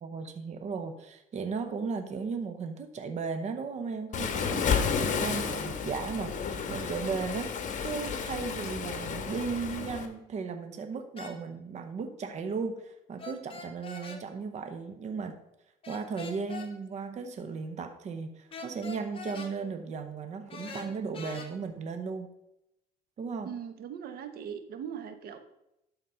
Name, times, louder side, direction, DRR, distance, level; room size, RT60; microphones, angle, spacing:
voice 1, 0.0-15.4 15.9-22.3 23.2-23.6, right 5 dB, 45° right, 7 dB, 0.8 m, -36 dB
Waves surf, 4.1-10.1, left 6 dB, 50° left, 1.2 m, -32 dB
sound 1, 11.2-11.4 13.2-14.2 15.8-16.7 18.5-19.5 20.5-21.5, left 4 dB, 35° left, 1.4 m, -43 dB
voice 2, 23.5-25.4, right 8 dB, 65° right, 9 dB, 0.9 m, -40 dB
12.0 x 4.1 x 5.5 m, 0.87 s
cardioid pair, 110°, 17 cm